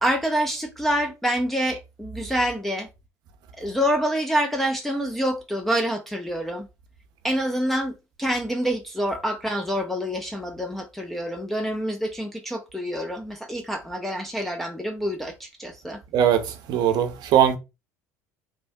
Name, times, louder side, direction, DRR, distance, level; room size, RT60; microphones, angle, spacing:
voice 1, 0.0-2.9 3.6-6.7 7.2-7.9 8.2-16.0, equal, ahead, 0.4 m, -26 dB
voice 2, 16.7-17.6, right 9 dB, 55° right, 0.6 m, -19 dB
3.3 x 2.1 x 2.6 m
hypercardioid pair, 75°, 8 cm